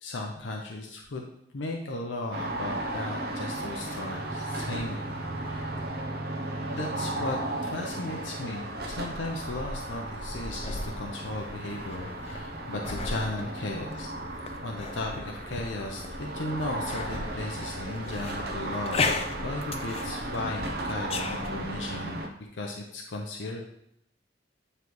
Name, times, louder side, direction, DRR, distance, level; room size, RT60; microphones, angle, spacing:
voice 1, 0.0-5.7 6.7-7.4 7.6-14.1 14.6-19.1 19.4-22.2 22.5-23.6, left 2 dB, 75° left, 1 dB, 0.7 m, -36 dB
sound 1, 2.3-22.3, right 1 dB, 55° right, 0.8 m, -35 dB
sound 2, 8.8-21.6, left 4 dB, 30° left, 0.4 m, -37 dB
9.3 x 3.3 x 3.1 m, 0.74 s
head